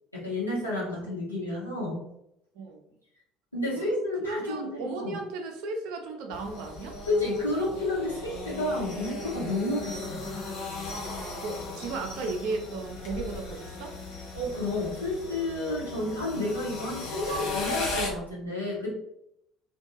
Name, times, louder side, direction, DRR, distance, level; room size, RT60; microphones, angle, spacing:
voice 1, 0.1-2.0 3.5-5.2 7.0-10.4 14.3-18.9, left 2 dB, 90° left, -7 dB, 0.8 m, -31 dB
voice 2, 4.2-7.0 11.4-14.0, right 3 dB, 60° right, 4 dB, 0.4 m, -35 dB
sound 1, 6.3-18.1, left 2 dB, 60° left, 0.7 m, -37 dB
2.5 x 2.2 x 2.8 m, 0.80 s
figure-of-eight pair, 60°, 0 cm